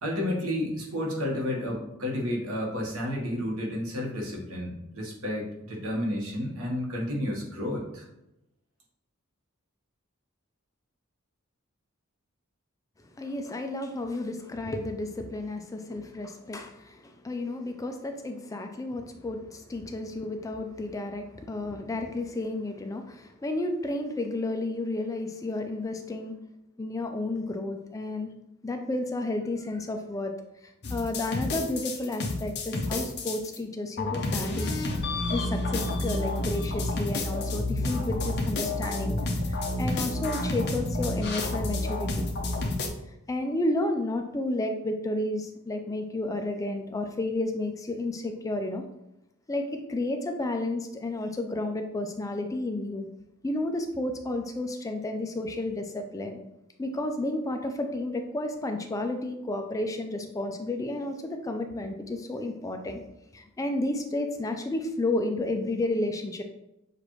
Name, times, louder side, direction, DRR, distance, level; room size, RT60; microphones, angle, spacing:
voice 1, 0.0-8.1, left 1 dB, 85° right, -1 dB, 1.2 m, -31 dB
voice 2, 13.2-26.4 26.8-28.3 28.6-30.3 30.6-34.8 35.3-39.2 39.5-42.3 43.3-48.8 49.5-53.1 53.4-56.4 56.8-63.0 63.3-66.4, left 2 dB, 15° left, 5 dB, 0.3 m, -32 dB
sound 1, 30.8-33.6 34.0-42.9, left 2 dB, 50° left, 0.7 m, -30 dB
6.6 x 2.5 x 3.1 m, 0.87 s
head